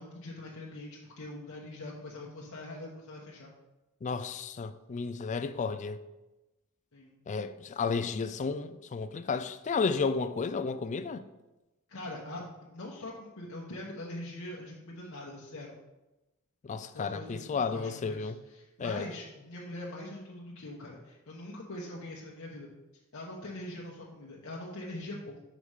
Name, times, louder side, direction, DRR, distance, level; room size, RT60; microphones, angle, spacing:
voice 1, 0.0-3.5 6.9-7.2 11.9-12.5 12.7-15.7 16.9-22.7 23.1-25.4, left 1 dB, 70° left, 1.0 m, -43 dB
voice 2, 4.0-6.0 7.3-11.2 16.6-18.4 18.8-19.1, left 5 dB, 35° left, 0.3 m, -32 dB
5.4 x 5.1 x 4.8 m
head